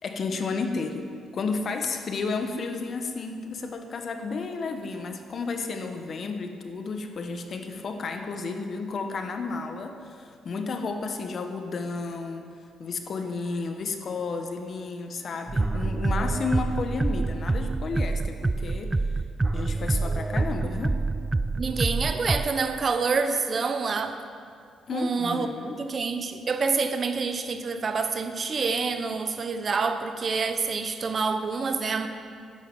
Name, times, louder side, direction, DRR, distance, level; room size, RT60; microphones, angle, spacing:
voice 1, 0.0-1.0 1.3-12.5 12.8-19.0 19.5-21.0 24.9-25.8, left 4 dB, 50° left, 6 dB, 1.3 m, -32 dB
sound 1, 15.5-22.5, right 3 dB, 20° right, 0.4 m, -27 dB
voice 2, 21.6-24.1 24.9-32.1, right 4 dB, 45° right, 8 dB, 0.9 m, -27 dB
11.5 x 9.8 x 7.0 m, 2.3 s
cardioid pair, 90°, 0 cm